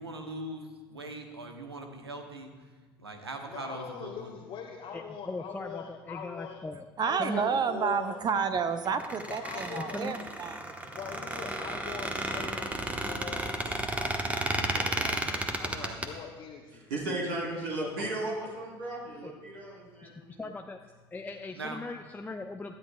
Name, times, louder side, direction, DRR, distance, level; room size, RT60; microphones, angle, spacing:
voice 1, 0.0-2.7 3.0-4.3 13.6-13.8 15.8-16.0 18.0-18.1 21.5-21.8, right 2 dB, 85° right, 4 dB, 1.1 m, -41 dB
voice 2, 3.5-6.6 7.0-8.2 9.3-10.0 10.9-16.9 17.5-18.1 18.4-18.6, left 7 dB, 45° left, -1 dB, 1.2 m, -43 dB
voice 3, 4.9-6.9 7.2-7.6 9.7-10.2 19.2-19.3 20.0-20.8 21.1-22.7, left 3 dB, 15° left, 4 dB, 0.6 m, -39 dB
voice 4, 7.0-10.6, right 6 dB, 35° right, 9 dB, 0.8 m, -30 dB
Squeak, 8.8-16.1, right 1 dB, 10° right, 1.3 m, -33 dB
voice 5, 16.9-20.4, right 2 dB, 70° right, -4 dB, 3.3 m, -35 dB
18.5 x 12.5 x 2.3 m, 1.3 s
figure-of-eight pair, 65°, 13 cm